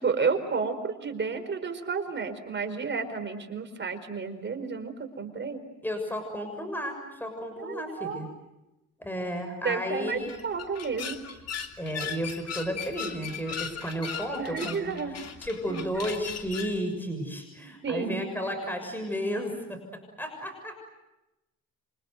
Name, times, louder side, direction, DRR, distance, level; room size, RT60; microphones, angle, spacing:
voice 1, 0.0-5.6 7.6-8.2 9.6-11.2 14.4-15.1 15.7-15.8 17.8-18.3, right 5 dB, 40° right, 7 dB, 4.7 m, -31 dB
voice 2, 5.8-8.3 9.0-10.4 11.8-19.8 20.2-20.8, equal, 5° left, 5 dB, 6.7 m, -33 dB
sound 1, 10.1-16.8, left 7 dB, 55° left, 2.9 m, -38 dB
29.0 x 25.5 x 7.9 m, 0.97 s
cardioid pair, 90°, 30 cm